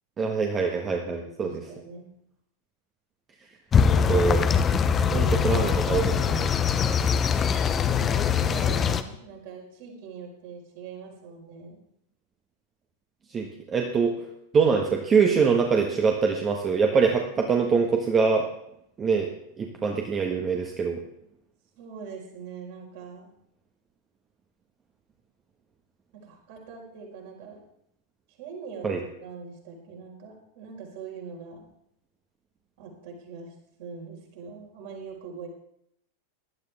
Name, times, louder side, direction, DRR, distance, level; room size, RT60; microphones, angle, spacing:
voice 1, 0.2-1.5 4.1-4.4 5.1-6.5 13.3-14.2 14.5-18.5 19.0-19.3 19.6-21.0 28.8-29.0, right 5 dB, 20° right, 1 dB, 1.6 m, -24 dB
voice 2, 1.2-2.1 7.9-11.8 21.8-23.3 26.2-27.6 28.3-31.6 32.8-35.5, right 5 dB, 50° right, -1 dB, 5.0 m, -42 dB
sound 1, 3.7-9.0, left 7 dB, 25° left, 0.9 m, -22 dB
19.0 x 12.0 x 3.6 m, 0.76 s
figure-of-eight pair, 90°, 0 cm